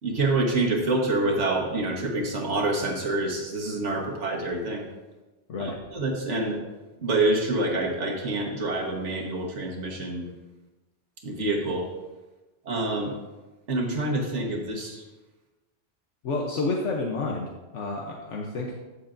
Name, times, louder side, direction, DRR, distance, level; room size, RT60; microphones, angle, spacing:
voice 1, 0.0-4.9 5.6-6.6 7.0-10.3 11.2-11.9 12.6-13.1 13.7-15.0, right 2 dB, 75° right, 0 dB, 1.7 m, -27 dB
voice 2, 16.2-18.7, left 3 dB, 80° left, 0 dB, 1.2 m, -30 dB
13.0 x 6.7 x 2.6 m, 1.2 s
omnidirectional pair, 1.2 m